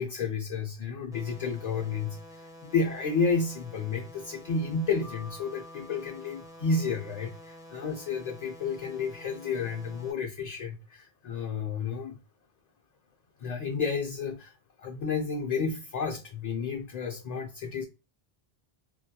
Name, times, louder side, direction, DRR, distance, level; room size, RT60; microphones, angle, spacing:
voice 1, 0.0-12.2 13.4-14.5 14.8-17.8, left 5 dB, 55° left, 0.5 m, -31 dB
sound 1, 1.1-10.1, equal, 5° right, 0.3 m, -49 dB
Mallet percussion, 5.0-7.8, left 2 dB, 60° right, 0.7 m, -52 dB
2.2 x 2.2 x 2.7 m
omnidirectional pair, 1.0 m